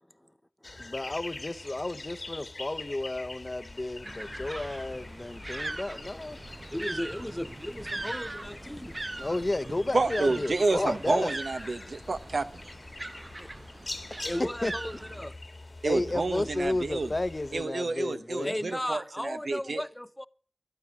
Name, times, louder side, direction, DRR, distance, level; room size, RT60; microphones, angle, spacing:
sound 1, 0.6-17.6, left 2 dB, 65° left, 1.8 m, -44 dB
voice 1, 0.8-6.4 9.2-11.3 14.1-14.7 15.8-18.5, left 2 dB, 45° left, 0.9 m, -32 dB
sound 2, 4.0-15.2, right 2 dB, 45° right, 0.5 m, -41 dB
voice 2, 6.7-8.9 14.2-15.4 18.4-20.3, left 1 dB, 15° left, 0.6 m, -35 dB
voice 3, 9.9-12.7 15.8-17.1 17.5-19.8, right 3 dB, 85° right, 1.0 m, -29 dB
13.5 x 12.0 x 5.9 m
cardioid pair, 40°, 0 cm